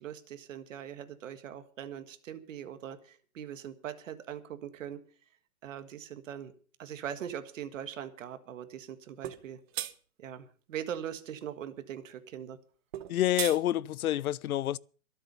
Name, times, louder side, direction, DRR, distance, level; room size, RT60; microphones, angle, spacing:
voice 1, 0.0-5.0 5.6-6.5 6.8-9.6 10.2-12.6, right 9 dB, 60° right, 1.8 m, -41 dB
sound 1, 9.2-9.4 9.7-9.9 12.9-13.6, right 13 dB, 45° right, 1.4 m, -35 dB
voice 2, 13.1-14.8, left 12 dB, 75° left, 0.7 m, -28 dB
22.5 x 7.8 x 5.4 m
hypercardioid pair, 155°, 43 cm